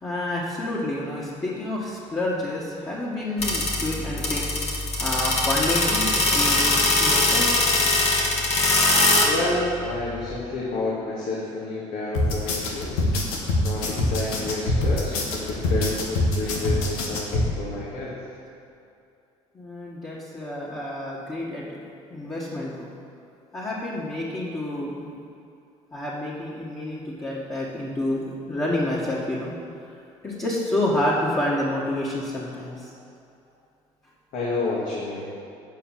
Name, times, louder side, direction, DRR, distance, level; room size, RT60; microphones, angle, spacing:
voice 1, 0.0-4.5 5.0-7.5 19.5-21.7 22.1-22.9 23.5-25.2 25.9-29.5 30.2-32.9, left 1 dB, 25° left, -7 dB, 1.8 m, -28 dB
Stick in fan, 3.4-10.3, left 2 dB, 50° left, 2.0 m, -22 dB
voice 2, 9.2-13.0 13.6-18.2 34.3-35.3, left 2 dB, 65° left, -6 dB, 2.1 m, -29 dB
sound 1, 12.1-17.5, left 1 dB, 85° left, 1.5 m, -24 dB
8.5 x 5.0 x 7.5 m, 2.6 s
supercardioid pair, 80°, 15 cm